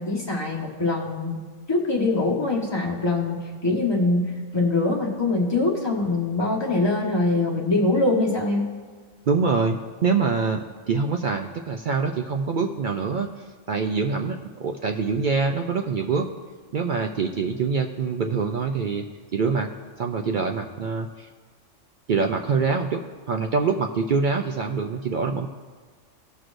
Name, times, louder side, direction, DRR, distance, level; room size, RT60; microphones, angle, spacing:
voice 1, 0.0-1.4 1.7-8.7, left 2 dB, 20° left, -3 dB, 1.4 m, -23 dB
voice 2, 9.3-13.3 13.7-16.3 16.7-19.1 19.3-19.7 20.0-21.3 22.1-25.5, right 5 dB, 70° right, 4 dB, 0.4 m, -25 dB
18.0 x 6.2 x 2.5 m, 1.5 s
omnidirectional pair, 1.3 m